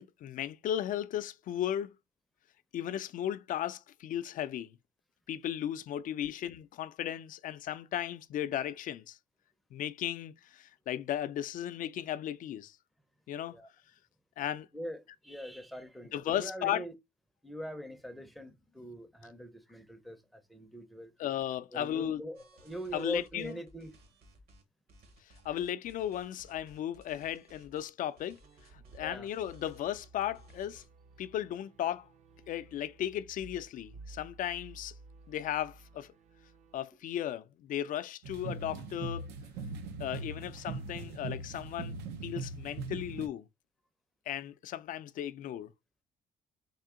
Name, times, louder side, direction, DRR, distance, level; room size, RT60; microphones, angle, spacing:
voice 1, 0.0-2.0 2.7-4.8 5.3-9.2 9.7-12.8 13.3-13.6 14.4-14.7 16.1-16.8 21.2-22.2 22.9-23.5 25.4-28.4 28.7-30.8 31.2-32.1 32.5-34.9 35.3-36.1 36.7-39.3 40.0-41.9 42.2-43.5 44.3-45.7, left 11 dB, 55° left, 0.4 m, -35 dB
voice 2, 14.7-16.9 17.4-21.1 21.7-24.0 29.0-29.3 40.4-40.5 41.0-41.1, equal, ahead, 0.5 m, -42 dB
sound 1, 22.3-24.6 24.9-30.9, right 1 dB, 70° right, 1.4 m, -60 dB
sound 2, 28.4-36.8, right 3 dB, 45° right, 0.6 m, -55 dB
sound 3, 38.2-43.3, right 3 dB, 85° right, 0.6 m, -40 dB
3.7 x 2.7 x 3.6 m
cardioid pair, 110°, 17 cm